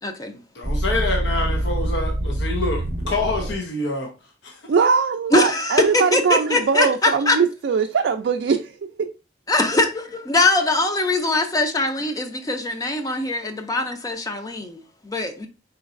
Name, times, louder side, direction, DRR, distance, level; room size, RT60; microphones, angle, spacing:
voice 1, 0.0-0.3 5.3-7.4 9.5-15.5, left 2 dB, 20° left, 0.5 m, -22 dB
voice 2, 0.5-4.1 4.4-4.7, left 2 dB, 80° left, 0.7 m, -26 dB
sound 1, 0.6-3.6, right 1 dB, 35° right, 0.7 m, -25 dB
voice 3, 4.7-9.1, right 5 dB, 75° right, 0.3 m, -21 dB
4.4 x 3.9 x 2.5 m
head